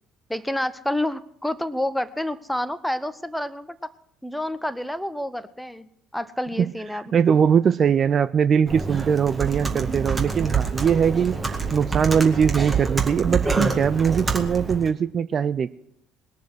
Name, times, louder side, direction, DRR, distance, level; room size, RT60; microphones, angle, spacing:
voice 1, 0.3-3.8 4.2-7.1, left 1 dB, 5° left, 14 dB, 0.9 m, -29 dB
voice 2, 7.1-15.8, right 7 dB, 40° right, 15 dB, 0.4 m, -21 dB
Computer keyboard, 8.7-14.9, right 4 dB, 20° right, 2.1 m, -26 dB
20.5 x 7.1 x 6.1 m, 0.73 s
figure-of-eight pair, 55°, 0 cm